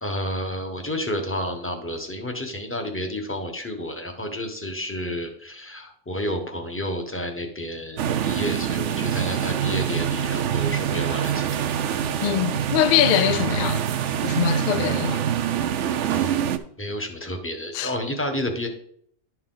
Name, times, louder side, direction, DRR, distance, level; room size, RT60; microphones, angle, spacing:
voice 1, 0.0-11.6 16.1-16.4 16.8-18.7, left 1 dB, 10° left, 1.0 m, -30 dB
sound 1, 8.0-16.6, right 9 dB, 70° right, 0.9 m, -25 dB
voice 2, 12.2-13.8 14.2-15.2 17.7-17.9, left 11 dB, 65° left, 0.5 m, -23 dB
11.5 x 4.6 x 3.9 m
omnidirectional pair, 1.3 m